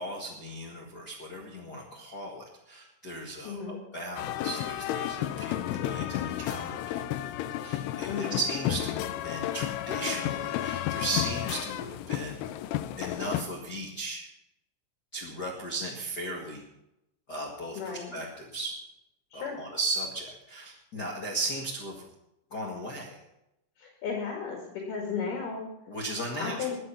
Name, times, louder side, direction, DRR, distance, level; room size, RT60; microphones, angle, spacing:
voice 1, 0.0-12.4 13.0-14.2 15.1-16.6 17.3-18.7 19.3-22.0 22.5-23.2 25.9-26.5, right 2 dB, 50° left, -2 dB, 1.2 m, -36 dB
voice 2, 3.4-3.8 8.1-8.4 17.8-18.1 19.3-19.6 23.8-25.7 26.4-26.8, left 5 dB, 65° left, -1 dB, 3.8 m, -34 dB
sound 1, 4.2-13.4, left 12 dB, 80° left, 2.7 m, -32 dB
21.0 x 7.9 x 5.7 m, 0.88 s
omnidirectional pair, 4.9 m